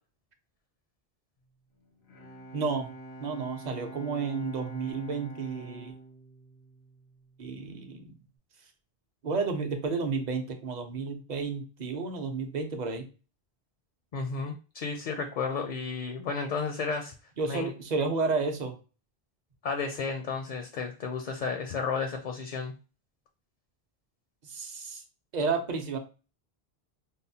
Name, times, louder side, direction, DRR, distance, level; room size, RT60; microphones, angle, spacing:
Bowed string instrument, 1.8-7.6, right 1 dB, 90° left, 1.2 m, -46 dB
voice 1, 2.5-2.9 3.2-5.9 7.4-8.1 9.2-13.1 17.4-18.8 24.4-25.0 25.3-26.0, right 4 dB, 50° right, 5 dB, 0.7 m, -31 dB
voice 2, 14.1-17.1 17.5-17.7 19.6-22.7, left 5 dB, 55° left, 5 dB, 0.6 m, -32 dB
5.3 x 2.1 x 2.7 m, 0.33 s
omnidirectional pair, 1.1 m